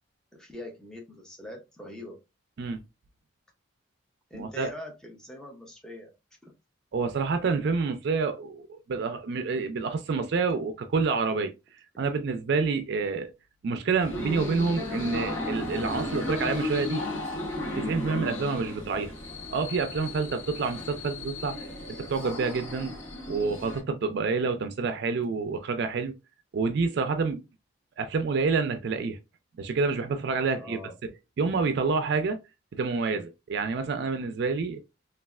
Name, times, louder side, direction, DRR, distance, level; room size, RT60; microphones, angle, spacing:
voice 1, 0.3-2.2 4.3-6.1 6.4-6.5 30.5-30.9, left 1 dB, 5° left, 0.6 m, -43 dB
voice 2, 4.3-4.7 6.9-13.3 13.6-17.1 17.5-19.1 19.5-21.6 21.9-23.0 23.3-26.1 26.5-27.4 28.0-29.2 29.6-30.8 31.4-32.4 32.7-34.8, right 4 dB, 55° right, 0.3 m, -28 dB
sound 1, 14.0-23.8, left 1 dB, 85° left, 0.9 m, -35 dB
3.2 x 2.3 x 2.3 m
head